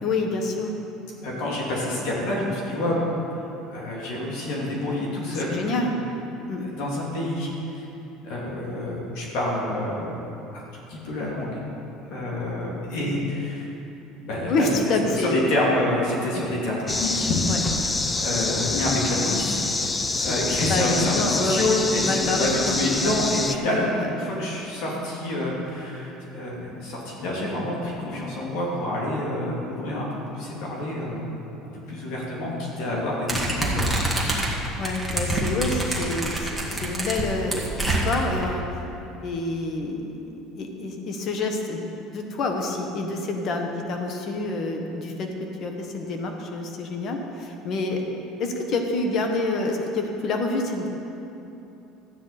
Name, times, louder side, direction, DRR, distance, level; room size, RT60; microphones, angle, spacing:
voice 1, 0.0-0.7 5.5-5.9 6.5-6.7 14.5-15.4 16.3-16.5 17.5-17.6 20.7-21.7 21.9-23.2 24.0-24.1 34.8-38.6 39.2-41.9 42.1-45.3 45.6-48.0 48.4-50.9, left 3 dB, 50° left, 3 dB, 1.3 m, -27 dB
voice 2, 1.2-3.1 3.7-5.6 6.6-7.8 8.2-10.2 10.5-10.6 10.9-11.6 12.1-13.7 14.2-14.7 15.2-17.4 18.2-19.9 20.2-31.2 31.7-34.0, left 1 dB, 70° left, -4 dB, 2.7 m, -27 dB
sound 1, 16.9-23.6, left 3 dB, 15° left, 0.5 m, -26 dB
sound 2, 33.3-38.4, right 1 dB, ahead, 1.9 m, -26 dB
13.0 x 9.3 x 4.2 m, 2.9 s
supercardioid pair, 120°, 0 cm